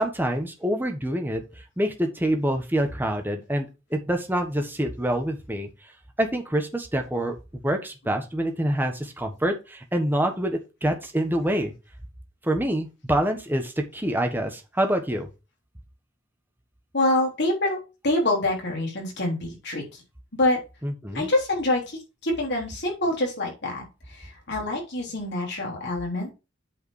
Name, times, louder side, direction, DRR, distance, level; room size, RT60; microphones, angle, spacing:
voice 1, 0.0-1.4 1.8-5.7 6.2-11.7 12.4-15.3 20.8-21.3, right 1 dB, 10° right, 5 dB, 1.3 m, -26 dB
voice 2, 16.9-17.8 18.0-20.0 20.3-20.6 21.1-26.3, left 1 dB, 55° left, -1 dB, 3.6 m, -26 dB
8.4 x 5.0 x 4.8 m, 0.29 s
head